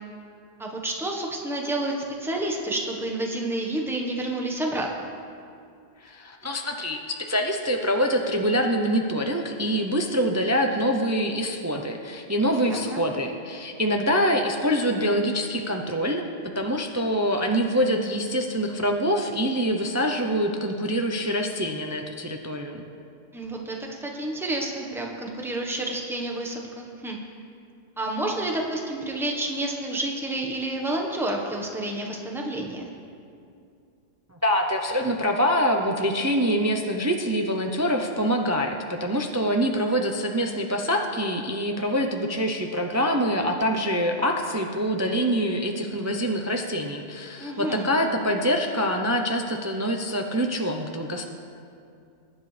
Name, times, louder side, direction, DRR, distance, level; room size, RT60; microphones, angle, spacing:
voice 1, 0.6-5.1 12.6-13.0 23.3-27.2 28.0-32.9 47.4-47.9, right 1 dB, ahead, 0 dB, 1.1 m, -29 dB
voice 2, 6.0-16.3 16.5-22.8 34.3-51.2, equal, 20° right, 3 dB, 0.5 m, -25 dB
21.5 x 10.0 x 3.3 m, 2.5 s
omnidirectional pair, 1.3 m